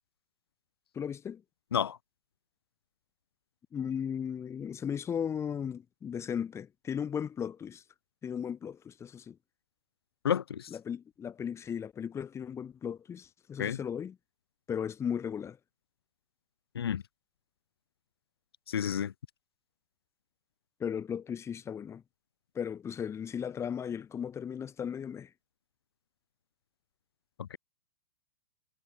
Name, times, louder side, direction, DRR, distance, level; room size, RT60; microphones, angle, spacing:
voice 1, 0.9-1.4 3.7-7.8 8.2-9.4 10.7-14.1 14.7-15.6 20.8-22.0 22.5-25.3, left 8 dB, 20° left, 7.6 m, -36 dB
voice 2, 10.2-10.7 13.6-13.8 16.7-17.0 18.7-19.1 27.4-27.6, left 8 dB, 70° left, 7.1 m, -30 dB
hypercardioid pair, 110°, 13 cm